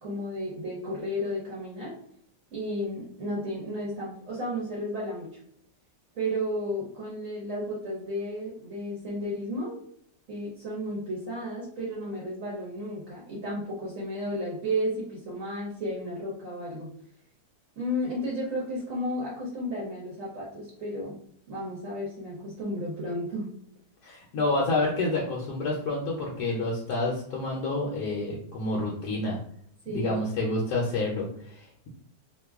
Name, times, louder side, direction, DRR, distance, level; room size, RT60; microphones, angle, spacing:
voice 1, 0.0-1.9 2.5-5.3 6.1-9.8 10.3-16.9 17.8-21.2 21.5-23.5 29.8-30.2, equal, 55° right, -4 dB, 1.2 m, -33 dB
voice 2, 24.0-29.4 29.9-31.9, left 2 dB, 70° left, -4 dB, 1.1 m, -29 dB
3.0 x 2.2 x 3.4 m, 0.65 s
omnidirectional pair, 1.8 m